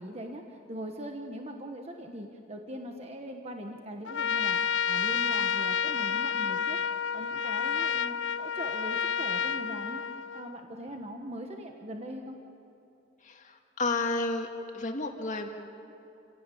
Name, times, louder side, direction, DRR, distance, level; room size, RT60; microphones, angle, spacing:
voice 1, 0.0-6.8 7.1-10.0 10.3-12.4, equal, 35° right, 3 dB, 1.4 m, -41 dB
Trumpet, 4.1-10.6, left 7 dB, 90° left, 0.5 m, -30 dB
voice 2, 13.2-14.5 14.7-15.5, left 3 dB, 40° left, 3 dB, 2.1 m, -31 dB
28.0 x 17.5 x 8.6 m, 2.8 s
head